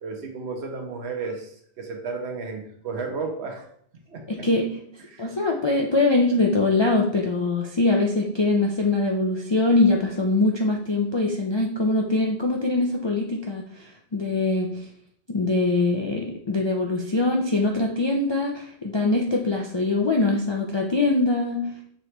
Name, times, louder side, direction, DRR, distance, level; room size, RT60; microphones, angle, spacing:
voice 1, 0.0-3.7 4.1-4.5 5.1-5.3, right 4 dB, 80° right, 3 dB, 1.1 m, -33 dB
voice 2, 4.3-4.7 5.2-14.9 15.3-21.6, left 2 dB, 50° left, -1 dB, 0.3 m, -23 dB
5.3 x 2.9 x 3.2 m, 0.65 s
omnidirectional pair, 1.1 m